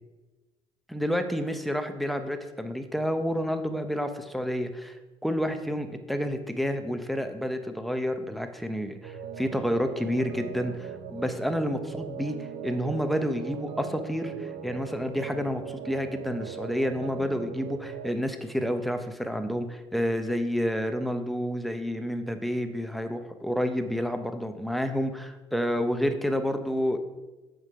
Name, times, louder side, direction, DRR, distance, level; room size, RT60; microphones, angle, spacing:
voice 1, 0.9-27.0, equal, ahead, 7 dB, 0.7 m, -29 dB
sound 1, 9.0-18.1, right 8 dB, 75° right, 0.4 m, -40 dB
8.0 x 3.8 x 5.6 m, 1.1 s
cardioid pair, 110°, 11 cm